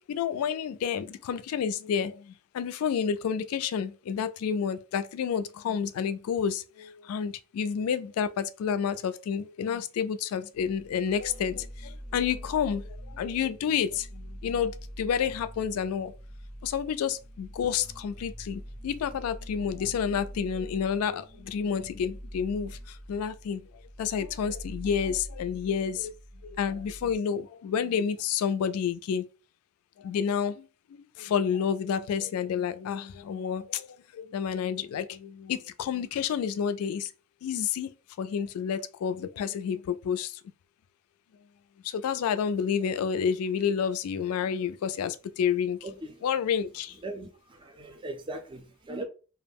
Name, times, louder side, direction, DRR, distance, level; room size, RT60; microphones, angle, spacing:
voice 1, 0.1-16.1 16.6-26.1 26.4-29.3 30.0-37.1 37.4-37.9 38.2-40.4 41.8-45.8 46.2-47.0, left 7 dB, 85° left, 0.3 m, -30 dB
sound 1, 10.5-27.2 27.6-27.7 28.1-28.2, equal, 90° right, 1.0 m, -44 dB
voice 2, 45.8-46.3 47.0-49.0, right 2 dB, 25° right, 0.4 m, -39 dB
2.3 x 2.0 x 3.4 m
head